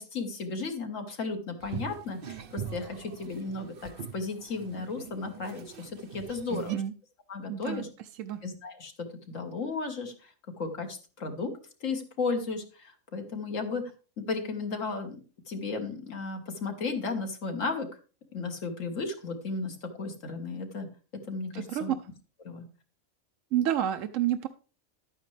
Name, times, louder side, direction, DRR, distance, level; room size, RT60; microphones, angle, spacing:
voice 1, 0.0-6.7 7.3-7.9 8.4-10.3 10.6-11.5 11.8-13.8 14.2-15.2 15.5-17.9 18.3-20.9 21.3-21.9 22.4-22.6, left 4 dB, 65° left, 5 dB, 1.9 m, -34 dB
sound 1, 1.6-6.8, right 6 dB, 50° right, 0.8 m, -42 dB
voice 2, 6.5-6.9 7.5-7.8 8.1-8.4 21.5-22.0 23.5-24.5, right 11 dB, 70° right, 7 dB, 1.0 m, -29 dB
11.5 x 9.0 x 3.3 m, 0.35 s
omnidirectional pair, 1.5 m